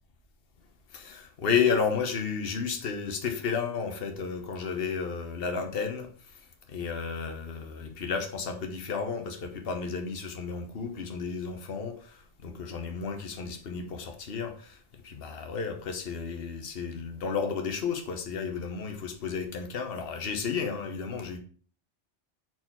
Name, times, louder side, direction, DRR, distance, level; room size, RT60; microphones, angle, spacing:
voice 1, 0.9-6.1 6.7-14.8 15.0-21.4, left 6 dB, 55° left, 5 dB, 1.2 m, -32 dB
4.5 x 4.2 x 5.7 m, 0.43 s
omnidirectional pair, 1.3 m